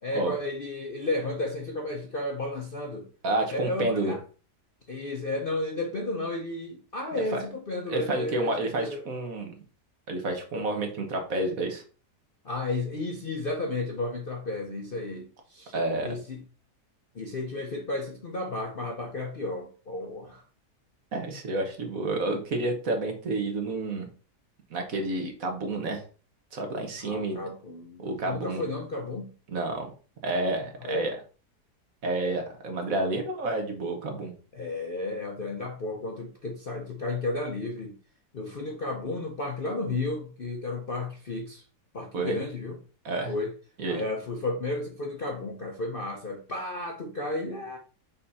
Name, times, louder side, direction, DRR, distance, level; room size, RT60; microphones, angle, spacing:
voice 1, 0.0-3.1 3.5-4.2 4.9-9.1 12.4-15.7 16.0-16.4 17.1-20.4 27.0-29.4 30.8-31.1 34.5-38.0 38.3-41.6 41.9-42.8 43.3-43.6 43.8-47.8, left 2 dB, 45° left, 0.7 m, -33 dB
voice 2, 3.2-4.1 7.3-7.4 7.9-9.5 10.1-11.8 15.7-16.1 21.1-24.1 24.7-26.0 26.5-27.4 28.0-28.6 29.5-29.9 30.2-31.2 32.0-34.3 42.1-42.4 43.0-43.3 43.8-44.0, right 2 dB, 55° right, 1.6 m, -29 dB
5.6 x 4.2 x 4.1 m
omnidirectional pair, 1.8 m